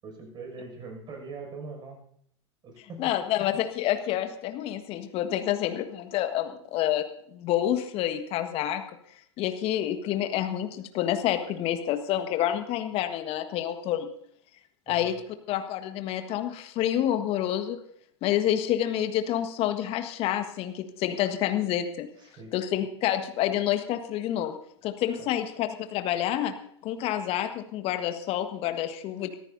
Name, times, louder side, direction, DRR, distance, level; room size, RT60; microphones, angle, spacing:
voice 1, 0.0-2.0 2.6-3.1 14.9-15.1 22.2-22.5 25.1-25.3, right 3 dB, 30° right, 2 dB, 6.2 m, -42 dB
voice 2, 3.0-7.1 7.3-8.8 9.4-14.1 14.9-15.2 15.5-17.8 18.2-22.1 22.5-24.6 24.8-26.5 26.8-29.3, left 11 dB, 40° left, 8 dB, 1.5 m, -28 dB
24.0 x 14.0 x 2.7 m, 0.68 s
figure-of-eight pair, 90°, 15 cm